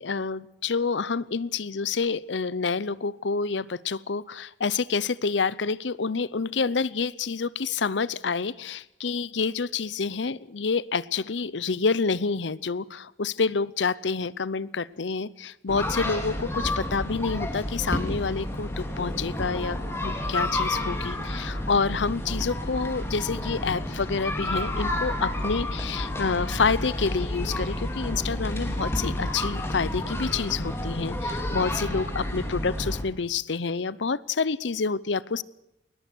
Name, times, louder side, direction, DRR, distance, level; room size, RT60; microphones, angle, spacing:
voice 1, 0.0-19.8 20.0-35.4, left 4 dB, 75° left, 20 dB, 0.7 m, -28 dB
sound 1, 15.7-33.0, left 1 dB, 15° left, 3.6 m, -30 dB
21.5 x 20.0 x 6.2 m, 0.86 s
head